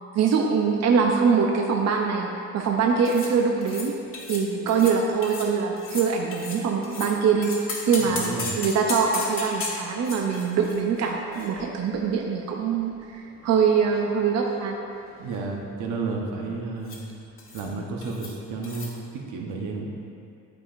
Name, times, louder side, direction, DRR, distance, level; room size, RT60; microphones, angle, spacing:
voice 1, 0.1-2.3 2.5-3.9 4.3-7.5 7.9-8.3 8.6-14.8, right 6 dB, 60° right, 1 dB, 0.6 m, -23 dB
sound 1, 3.0-3.3 3.6-3.9 4.1-4.4 4.7-5.0 5.2-5.5 5.8-7.1 7.4-12.1 12.4-12.5 13.2-14.1 14.4-14.7 14.9-15.4 16.8-17.0 17.4-17.7 18.0-18.3 18.6-18.9, left 3 dB, 45° left, 1.5 m, -36 dB
voice 2, 8.0-8.6 15.2-17.0 17.5-19.9, right 4 dB, 85° right, 0 dB, 1.0 m, -32 dB
11.0 x 4.8 x 2.5 m, 2.6 s
cardioid pair, 90°, 30 cm